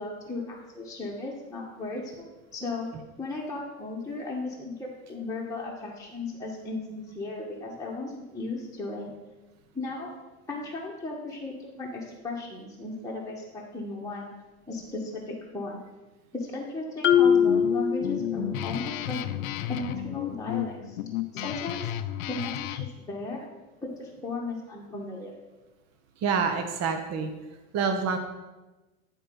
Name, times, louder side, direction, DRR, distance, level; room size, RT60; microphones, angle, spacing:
voice 1, 0.0-2.9 3.2-9.1 9.7-10.2 10.5-14.3 14.7-15.8 16.3-19.2 19.7-21.0 21.3-21.9 22.3-23.5 23.8-25.4, left 2 dB, 10° left, -4 dB, 1.4 m, -36 dB
Marimba xylophone, 17.0-18.8, left 8 dB, 30° left, 0.7 m, -22 dB
Guitar, 17.1-22.9, left 13 dB, 80° left, 0.6 m, -33 dB
voice 2, 26.2-27.3 27.7-28.2, right 5 dB, 40° right, 5 dB, 0.9 m, -27 dB
10.5 x 4.5 x 5.3 m, 1.1 s
hypercardioid pair, 105°, 42 cm